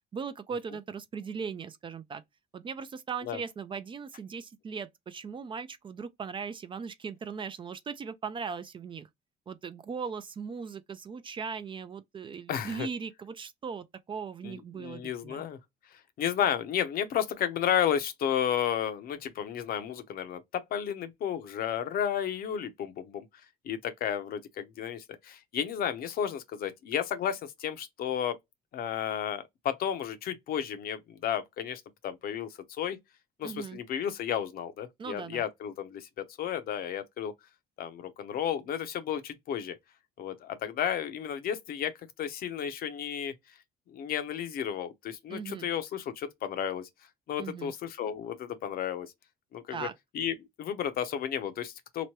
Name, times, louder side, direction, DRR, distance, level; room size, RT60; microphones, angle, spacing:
voice 1, 0.1-2.2 2.5-9.1 9.5-15.4 33.4-33.8 35.0-35.5 45.3-45.7 47.4-47.7 49.7-49.9, right 6 dB, 30° right, 0.4 m, -38 dB
voice 2, 12.5-12.9 14.4-15.6 16.2-23.3 23.6-28.4 28.7-33.0 33.4-37.3 37.8-39.8 40.2-41.9 42.2-43.3 43.9-46.9 47.3-49.1 49.5-49.9 50.1-52.1, left 9 dB, 60° left, 0.7 m, -32 dB
3.0 x 2.1 x 3.0 m
cardioid pair, 110°, 17 cm